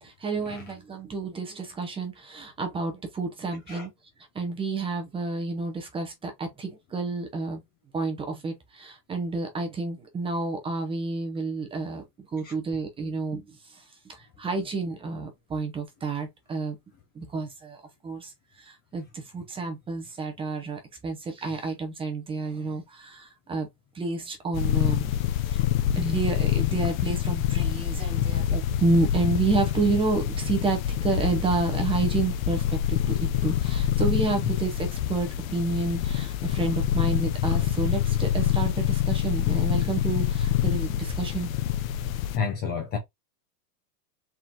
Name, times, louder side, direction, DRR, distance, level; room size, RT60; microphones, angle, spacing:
voice 1, 0.0-3.9 4.3-7.6 7.9-16.8 17.1-23.7 23.9-25.1 25.5-25.6 25.9-41.5, right 3 dB, 10° right, 0.8 m, -30 dB
sound 1, 24.5-42.4, left 10 dB, 60° left, 0.7 m, -26 dB
voice 2, 42.3-43.0, left 6 dB, 20° left, 0.6 m, -29 dB
4.5 x 3.9 x 2.9 m
supercardioid pair, 155°, 48 cm